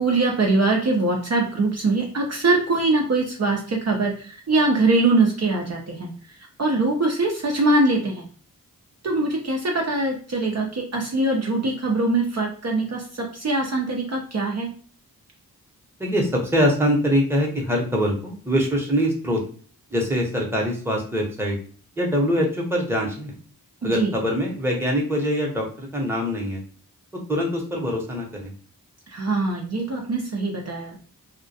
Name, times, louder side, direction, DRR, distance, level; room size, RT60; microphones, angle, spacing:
voice 1, 0.0-6.1 6.4-8.2 9.0-14.7 23.8-24.1 29.1-31.0, right 2 dB, 45° right, 0 dB, 0.5 m, -22 dB
voice 2, 16.0-19.4 19.9-21.6 22.0-23.4 23.8-26.6 27.1-28.5, equal, 5° right, -1 dB, 0.8 m, -23 dB
2.2 x 2.1 x 2.6 m, 0.43 s
cardioid pair, 45°, 36 cm